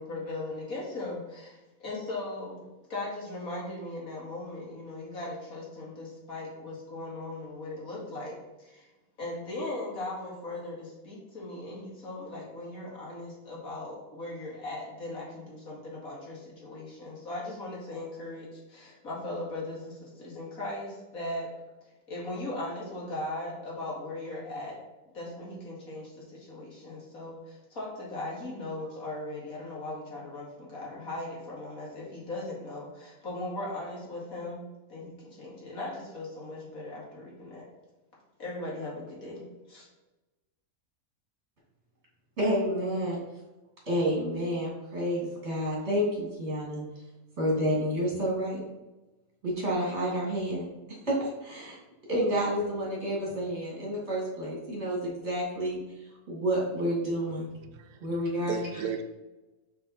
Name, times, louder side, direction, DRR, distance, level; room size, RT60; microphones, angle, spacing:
voice 1, 0.0-2.6 2.9-8.3 8.6-8.9 9.2-21.5 22.1-24.8 25.1-34.6 34.9-37.6 38.4-39.9, left 2 dB, 70° left, -5 dB, 2.6 m, -38 dB
voice 2, 42.4-43.2 43.9-46.8 47.4-48.6 49.4-50.6 51.0-51.1 51.4-51.8 52.1-55.8 56.3-57.5 58.0-58.7, equal, 50° right, -4 dB, 2.5 m, -29 dB
voice 3, 57.3-58.1 58.5-59.0, right 6 dB, 90° right, 8 dB, 1.2 m, -35 dB
5.5 x 5.5 x 4.2 m, 1.1 s
omnidirectional pair, 1.5 m